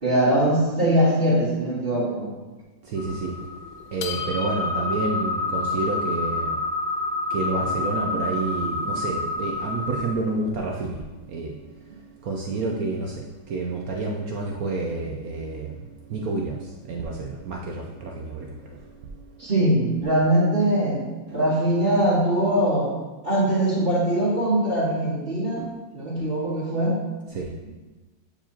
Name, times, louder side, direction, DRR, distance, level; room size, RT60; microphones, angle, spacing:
voice 1, 0.0-2.3 19.4-21.0 21.3-22.9 23.2-25.6 25.9-27.0, right 1 dB, 30° right, -11 dB, 1.9 m, -21 dB
voice 2, 2.8-3.4 3.9-6.6 7.3-11.6 12.2-18.9 19.4-19.5 25.6-25.7 26.1-26.3 27.3-27.5, right 3 dB, 75° right, 0 dB, 0.8 m, -29 dB
sound 1, 3.0-10.1, left 2 dB, 85° left, 0.7 m, -28 dB
8.5 x 4.7 x 2.8 m, 1.2 s
omnidirectional pair, 2.2 m